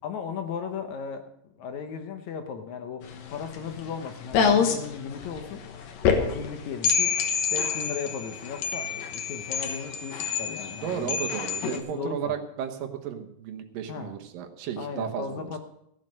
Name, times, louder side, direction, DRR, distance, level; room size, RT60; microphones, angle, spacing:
voice 1, 0.0-1.3 1.6-5.6 6.1-7.2 7.5-11.2 11.6-12.3 13.9-14.1 14.8-15.6, left 6 dB, 70° left, 7 dB, 2.1 m, -36 dB
sound 1, 3.0-11.8, left 6 dB, 85° left, 3.0 m, -27 dB
voice 2, 10.8-15.4, right 8 dB, 80° right, 5 dB, 2.9 m, -33 dB
15.5 x 7.6 x 6.5 m, 0.78 s
omnidirectional pair, 3.9 m